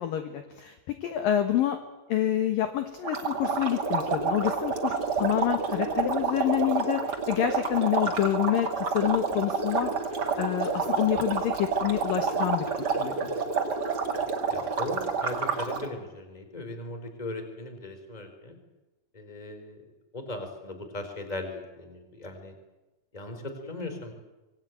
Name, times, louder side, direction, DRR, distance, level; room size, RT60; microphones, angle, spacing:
voice 1, 0.0-1.8 2.1-13.3, left 11 dB, 65° left, 7 dB, 2.5 m, -28 dB
sound 1, 3.0-15.9, right 5 dB, 45° right, 1.3 m, -29 dB
voice 2, 14.5-18.6 19.1-19.8 20.1-22.5 23.1-24.1, left 2 dB, 10° left, 6 dB, 3.0 m, -38 dB
25.0 x 20.5 x 9.1 m, 1.1 s
omnidirectional pair, 5.3 m